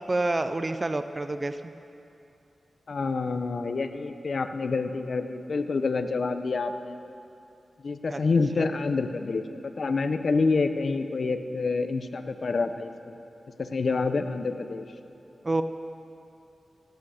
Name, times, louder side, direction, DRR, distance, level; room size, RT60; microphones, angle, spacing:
voice 1, 0.0-1.6 8.1-8.2 8.6-8.7 15.4-15.6, right 2 dB, 30° right, 9 dB, 0.5 m, -28 dB
voice 2, 2.9-7.0 7.8-9.4 9.8-13.1 13.6-14.9, left 4 dB, 60° left, 9 dB, 0.7 m, -27 dB
17.5 x 8.5 x 6.5 m, 2.8 s
wide cardioid pair, 85°, 0 cm